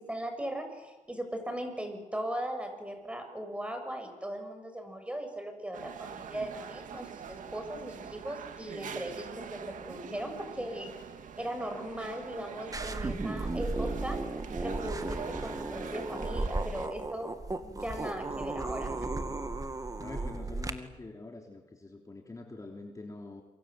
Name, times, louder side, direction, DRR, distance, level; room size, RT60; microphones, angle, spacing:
voice 1, 0.0-10.9 11.4-14.2 14.6-17.3 17.6-19.2, right 1 dB, 10° right, 5 dB, 6.8 m, -38 dB
sound 1, 5.7-16.9, right 7 dB, 80° right, 2.3 m, -44 dB
sound 2, 12.7-20.7, right 2 dB, 25° right, 2.2 m, -35 dB
voice 2, 20.0-23.4, left 2 dB, 25° left, 2 dB, 3.4 m, -45 dB
28.0 x 25.0 x 7.8 m, 1.2 s
cardioid pair, 95°, 13 cm